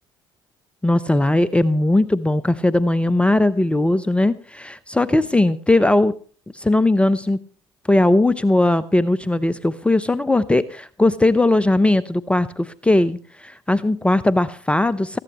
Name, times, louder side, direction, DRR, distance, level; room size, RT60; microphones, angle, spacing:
voice 1, 0.8-6.1 6.5-7.4 7.9-15.2, left 2 dB, 10° left, 16 dB, 0.8 m, -18 dB
19.5 x 15.0 x 3.1 m, 0.40 s
figure-of-eight pair, 55°, 12 cm